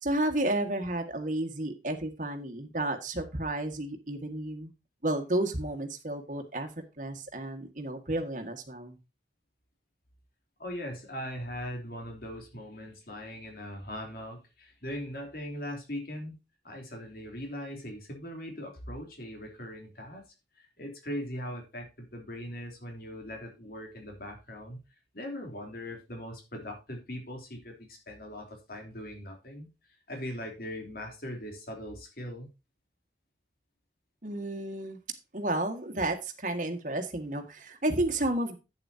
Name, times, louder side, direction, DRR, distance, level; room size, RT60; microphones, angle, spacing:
voice 1, 0.0-4.7 5.0-6.7 7.0-9.0 34.2-35.0 35.3-38.6, right 1 dB, 45° right, 6 dB, 1.8 m, -32 dB
voice 2, 10.6-16.3 16.6-20.2 20.5-24.8 25.1-29.7 30.1-32.5, equal, 55° left, 2 dB, 3.3 m, -40 dB
11.0 x 8.9 x 2.8 m, 0.27 s
head